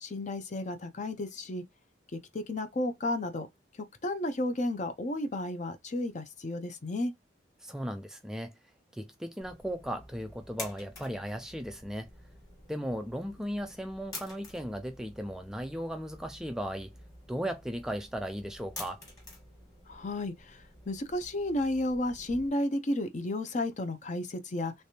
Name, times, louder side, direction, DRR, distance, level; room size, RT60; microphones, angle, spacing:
voice 1, 0.0-1.6 2.1-3.5 4.0-7.1 19.9-24.7, left 1 dB, 40° left, 0.6 m, -32 dB
voice 2, 7.6-8.5 8.9-12.1 12.7-16.9 17.3-19.0, equal, 5° right, 0.3 m, -36 dB
sound 1, 9.4-22.5, left 2 dB, 20° left, 1.5 m, -49 dB
3.3 x 3.3 x 2.7 m
head